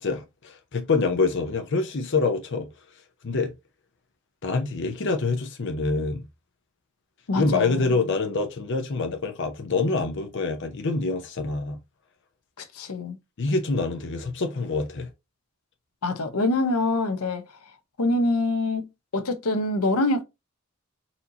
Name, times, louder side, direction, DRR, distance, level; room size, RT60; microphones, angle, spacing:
voice 1, 0.0-2.7 3.2-3.5 4.4-6.2 7.3-11.8 13.4-15.1, left 3 dB, 55° left, 0.6 m, -26 dB
voice 2, 7.3-7.9 12.6-13.2 16.0-17.4 18.0-18.9 19.1-20.2, left 2 dB, 90° left, 0.8 m, -25 dB
4.2 x 2.7 x 2.7 m
head